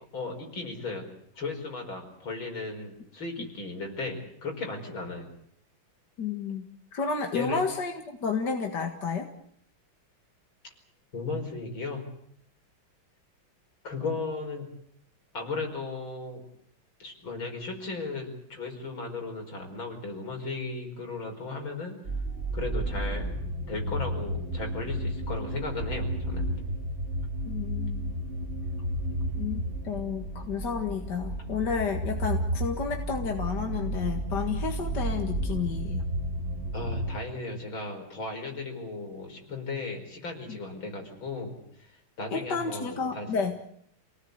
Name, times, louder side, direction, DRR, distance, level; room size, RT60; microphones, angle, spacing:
voice 1, 0.1-1.1 1.4-5.3 7.3-7.6 11.1-12.0 13.8-14.7 15.3-16.5 17.0-22.0 22.5-23.3 23.7-26.4 36.7-41.9 42.2-43.3, left 3 dB, 80° left, 3 dB, 6.0 m, -36 dB
voice 2, 6.2-9.3 27.5-28.1 29.4-36.0 40.5-40.6 42.3-43.6, left 5 dB, 60° left, 3 dB, 2.4 m, -31 dB
sound 1, 22.1-37.2, right 1 dB, 35° right, 2.7 m, -32 dB
28.5 x 18.5 x 8.1 m, 0.70 s
omnidirectional pair, 2.2 m